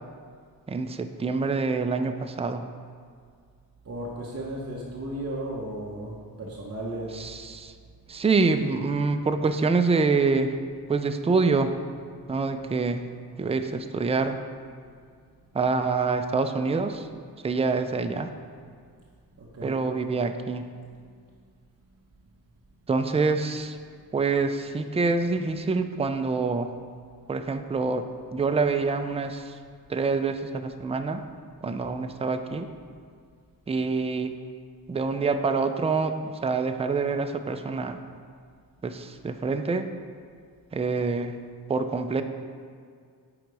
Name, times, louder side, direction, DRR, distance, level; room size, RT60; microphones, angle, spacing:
voice 1, 0.7-2.7 7.1-7.7 8.1-10.5 10.9-11.8 12.3-13.1 13.4-14.4 15.5-17.1 17.4-18.3 19.6-20.7 22.9-23.8 24.1-26.8 27.3-29.6 29.9-31.2 31.6-32.7 33.7-34.3 34.9-38.0 38.8-39.9 40.7-41.4 41.7-42.2, right 4 dB, 15° right, 8 dB, 0.3 m, -26 dB
voice 2, 3.8-7.1 19.4-19.8, right 1 dB, 35° right, -4 dB, 1.0 m, -35 dB
9.9 x 4.0 x 4.8 m, 2.1 s
wide cardioid pair, 105°, 40 cm